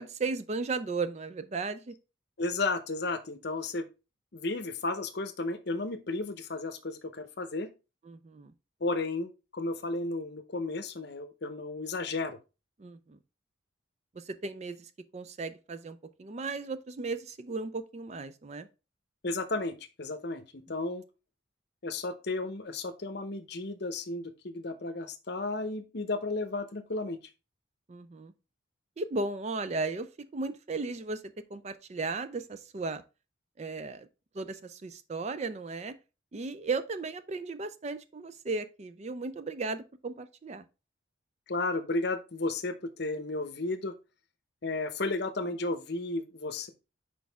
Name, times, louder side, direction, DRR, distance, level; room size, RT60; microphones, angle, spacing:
voice 1, 0.0-1.9 8.1-8.5 12.8-13.2 14.2-18.7 27.9-28.3 29.0-30.1 30.3-31.2 31.5-33.0 33.6-34.1 34.3-36.0 36.3-40.6, right 3 dB, 35° right, 0.4 m, -35 dB
voice 2, 2.4-3.8 4.3-7.7 8.8-12.4 19.2-21.0 21.8-27.2 41.5-43.9 44.6-46.7, left 2 dB, 55° left, 0.8 m, -33 dB
6.3 x 4.7 x 3.4 m
head